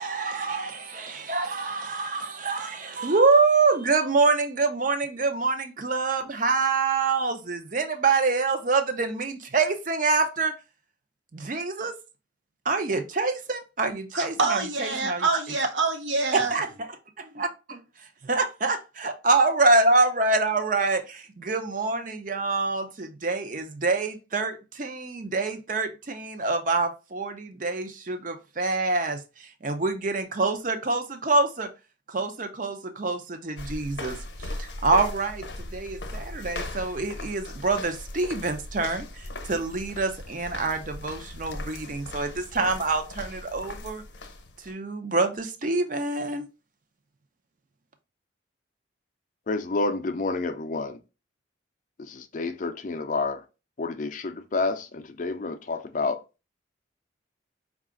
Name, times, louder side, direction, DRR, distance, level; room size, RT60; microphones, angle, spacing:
voice 1, 0.0-10.5 11.3-11.9 12.6-15.3 16.3-16.9 17.2-31.7 32.1-44.0 44.6-46.5, right 3 dB, 45° right, 0.6 m, -26 dB
voice 2, 14.1-16.5, right 4 dB, 80° right, 0.9 m, -26 dB
sound 1, 33.6-44.7, left 2 dB, 65° left, 0.8 m, -38 dB
voice 3, 49.5-51.0 52.1-53.4 53.8-56.2, left 3 dB, 40° left, 0.4 m, -29 dB
4.7 x 2.4 x 3.7 m
head